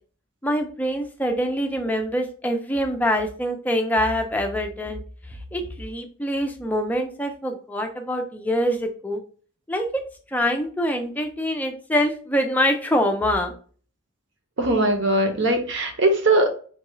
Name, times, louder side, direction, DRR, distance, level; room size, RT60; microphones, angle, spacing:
voice 1, 0.4-5.0 5.3-9.2 9.7-10.0 10.3-13.5, equal, 10° left, 0.4 m, -25 dB
voice 2, 14.6-16.5, right 2 dB, 60° right, 0.8 m, -20 dB
4.5 x 2.3 x 3.0 m
head